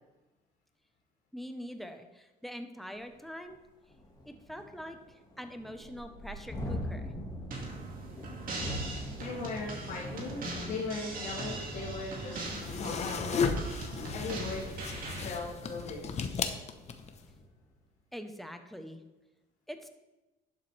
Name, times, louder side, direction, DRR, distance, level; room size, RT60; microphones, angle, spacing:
voice 1, 1.3-3.6 4.3-7.1 18.1-19.0 19.7-19.9, equal, ahead, 6 dB, 0.9 m, -44 dB
Thunderstorm, 3.0-3.1 3.5-3.6 3.9-17.5, equal, 20° left, 1.8 m, -43 dB
sound 1, 7.5-15.3, right 2 dB, 55° right, 2.2 m, -41 dB
voice 2, 9.1-13.5 14.1-14.7 15.2-16.0, left 3 dB, 60° left, -8 dB, 2.6 m, -39 dB
sound 2, 12.5-17.2, left 5 dB, 40° left, 0.9 m, -34 dB
11.5 x 7.3 x 3.3 m, 1.1 s
cardioid pair, 110°, 17 cm